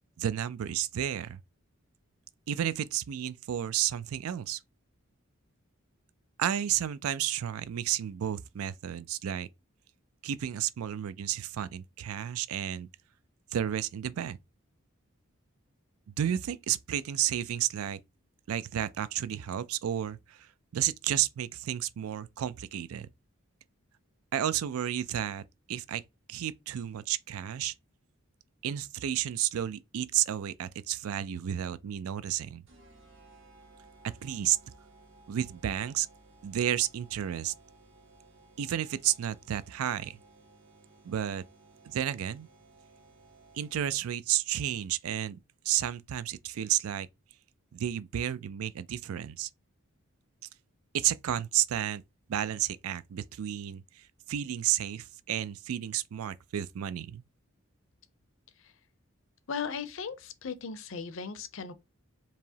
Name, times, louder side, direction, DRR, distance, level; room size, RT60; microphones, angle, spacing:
voice 1, 0.2-1.4 2.5-4.6 6.4-9.5 10.2-12.9 13.5-14.4 16.2-18.0 18.5-23.1 24.3-25.4 25.7-26.0 26.3-27.7 28.6-32.6 34.0-34.6 35.3-36.1 36.4-37.5 38.6-40.2 41.0-41.4 41.9-42.5 43.5-45.4 45.6-47.1 47.7-49.5 50.9-52.0 52.3-57.2, right 11 dB, 85° right, 0.4 m, -32 dB
sound 1, 32.7-44.1, right 2 dB, 60° right, 1.5 m, -58 dB
voice 2, 59.5-61.7, left 6 dB, 65° left, 0.5 m, -37 dB
4.7 x 2.9 x 2.7 m
head